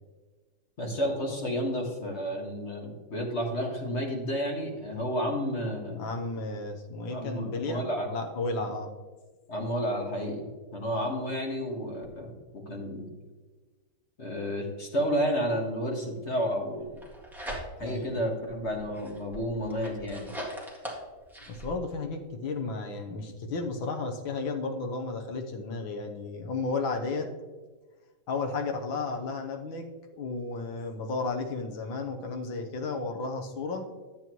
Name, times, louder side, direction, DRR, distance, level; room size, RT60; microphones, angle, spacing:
voice 1, 0.8-6.0 7.1-8.1 9.5-10.5 10.7-13.1 14.2-16.9 17.8-20.3, equal, 35° left, -1 dB, 1.8 m, -31 dB
voice 2, 5.9-7.8 8.1-8.9 17.8-18.2 21.5-27.3 28.3-29.9 30.1-33.9, left 3 dB, 80° left, 4 dB, 1.8 m, -33 dB
sound 1, 16.8-18.0 18.5-21.7, equal, ahead, 1.6 m, -41 dB
11.0 x 8.5 x 3.1 m, 1.3 s
omnidirectional pair, 2.2 m